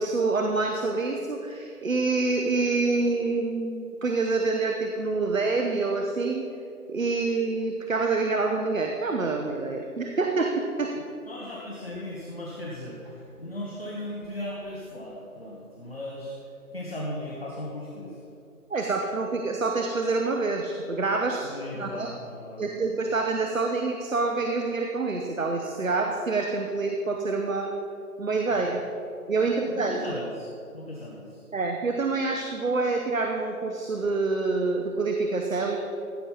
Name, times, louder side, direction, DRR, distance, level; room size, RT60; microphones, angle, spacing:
voice 1, 0.0-6.5 6.9-11.0 18.7-22.1 22.6-27.7 28.2-28.8 29.3-30.2 31.5-35.8, right 3 dB, 60° right, 3 dB, 1.0 m, -27 dB
voice 2, 10.9-18.2 21.4-22.7 28.5-28.7 29.4-31.4, left 1 dB, 40° left, -5 dB, 1.5 m, -38 dB
15.0 x 6.3 x 5.6 m, 2.6 s
figure-of-eight pair, 175°, 45 cm